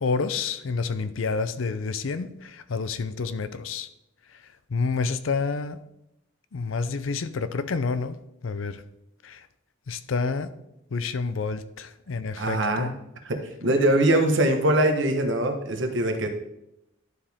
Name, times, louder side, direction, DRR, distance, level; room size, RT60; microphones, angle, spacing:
voice 1, 0.0-3.9 4.3-5.8 6.5-8.2 8.4-8.8 9.2-9.5 9.9-10.5 10.9-12.9, left 4 dB, 75° left, 13 dB, 0.5 m, -29 dB
voice 2, 12.4-12.9 13.2-16.3, right 1 dB, 65° right, 5 dB, 1.2 m, -22 dB
11.5 x 4.8 x 3.5 m, 0.84 s
head